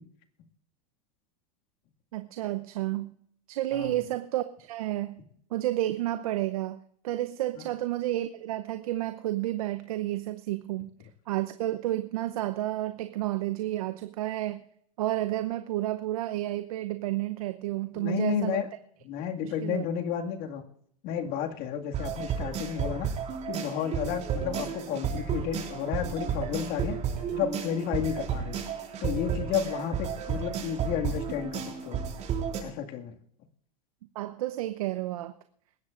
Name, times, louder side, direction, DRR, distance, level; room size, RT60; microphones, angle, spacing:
voice 1, 2.1-3.1 3.5-5.2 5.5-6.8 7.0-10.9 11.3-14.6 15.0-18.6 19.4-19.8 34.1-35.3, right 15 dB, 75° right, 10 dB, 0.8 m, -31 dB
voice 2, 17.9-18.7 19.0-20.6 21.0-23.1 23.5-27.0 27.3-28.6 29.0-32.0 32.6-33.1, left 8 dB, 55° left, 4 dB, 2.1 m, -32 dB
sound 1, 21.9-32.6, right 7 dB, 40° right, 4.4 m, -32 dB
20.0 x 16.0 x 2.5 m, 0.66 s
hypercardioid pair, 100°, 19 cm